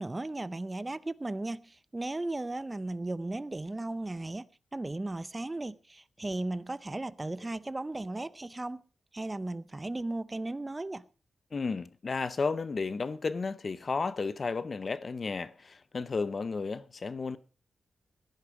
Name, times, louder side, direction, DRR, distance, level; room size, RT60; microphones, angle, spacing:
voice 1, 0.0-4.5 4.7-8.8 9.1-11.0, right 2 dB, 20° right, 0.6 m, -36 dB
voice 2, 11.5-17.4, left 4 dB, 45° left, 0.7 m, -33 dB
17.5 x 10.5 x 4.7 m
wide cardioid pair, 100°, 0 cm